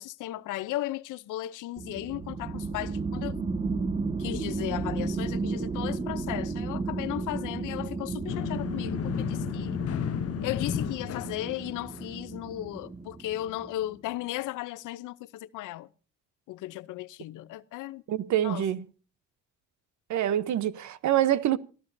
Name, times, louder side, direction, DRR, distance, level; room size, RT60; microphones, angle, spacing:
voice 1, 0.0-3.4 4.2-9.8 10.4-15.9 16.5-18.0 18.4-18.6, left 15 dB, 90° left, 0.7 m, -36 dB
sound 1, 1.8-13.8, right 3 dB, 20° right, 1.6 m, -34 dB
sound 2, 8.3-12.2, left 10 dB, 55° left, 0.8 m, -33 dB
voice 2, 18.1-18.8 20.1-21.6, right 11 dB, 70° right, 1.0 m, -26 dB
25.5 x 14.5 x 2.7 m
cardioid pair, 90°, 30 cm